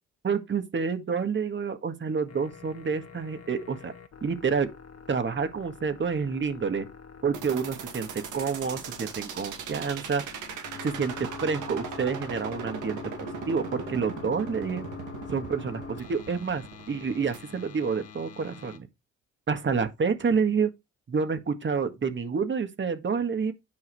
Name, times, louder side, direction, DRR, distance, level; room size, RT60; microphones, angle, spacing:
voice 1, 0.2-3.9 4.2-4.7 5.1-6.9 7.2-10.2 10.8-11.1 11.4-13.0 13.5-14.8 15.3-18.9 19.5-20.7 21.1-23.5, right 5 dB, 40° right, 1.8 m, -28 dB
sound 1, 2.3-18.8, left 5 dB, 50° left, 1.8 m, -44 dB
sound 2, 7.3-17.4, right 7 dB, 90° right, 2.3 m, -39 dB
9.6 x 4.9 x 4.7 m
cardioid pair, 90°, 30 cm